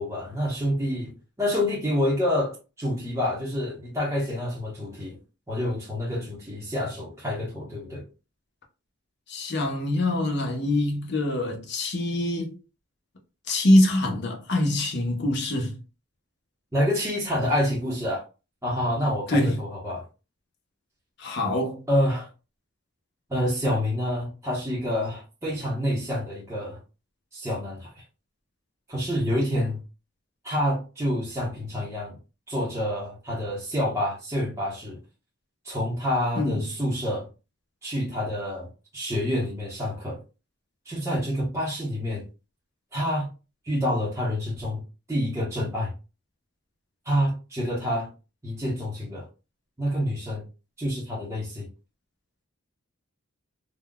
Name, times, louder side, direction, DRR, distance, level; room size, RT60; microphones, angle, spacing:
voice 1, 0.0-5.2 5.5-8.1 16.7-18.2 18.6-20.0 21.9-22.3 23.3-26.8 27.3-28.0 28.9-29.8 30.4-32.2 32.5-35.0 35.6-37.3 37.8-40.2 40.8-42.2 42.9-43.3 43.6-44.8 45.1-45.9 47.0-48.1 48.4-49.2 49.8-50.5 50.8-51.7, equal, 15° right, 0.8 m, -27 dB
voice 2, 9.3-12.5 13.5-15.8 19.3-19.6 21.2-21.8 36.4-36.6, left 1 dB, 50° left, 0.8 m, -24 dB
3.7 x 2.2 x 2.2 m
head